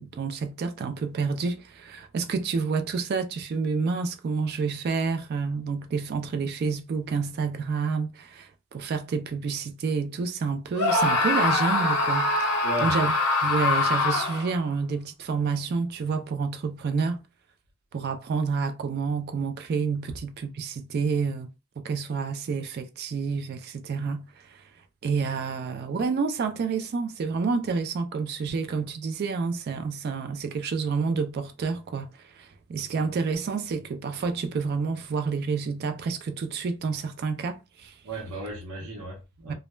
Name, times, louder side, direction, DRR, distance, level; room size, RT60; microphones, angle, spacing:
voice 1, 0.0-13.1 13.4-17.2 17.9-21.5 21.8-24.6 25.0-37.9 39.5-39.6, right 5 dB, 45° right, 0.3 m, -29 dB
Screaming, 10.8-14.6, left 3 dB, 80° left, 0.6 m, -24 dB
voice 2, 12.6-12.9 20.1-20.2 38.0-39.5, equal, 75° right, 0.7 m, -35 dB
2.2 x 2.0 x 3.1 m
head